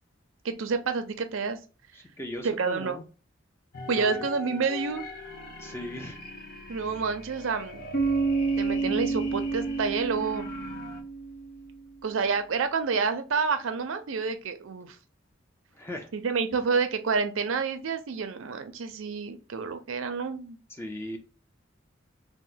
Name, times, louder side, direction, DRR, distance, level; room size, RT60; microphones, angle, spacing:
voice 1, 0.4-1.6 2.4-3.0 3.9-5.0 6.7-8.0 8.6-10.5 12.0-15.0 16.1-20.6, right 5 dB, 80° right, 0.5 m, -29 dB
voice 2, 1.9-3.0 3.9-4.3 5.6-6.2 15.7-16.1 20.7-21.2, left 1 dB, 10° left, 0.5 m, -38 dB
sound 1, 3.7-11.0, left 3 dB, 45° left, 0.7 m, -41 dB
Bass guitar, 7.9-11.8, right 4 dB, 65° left, 1.1 m, -29 dB
3.0 x 2.1 x 3.8 m
head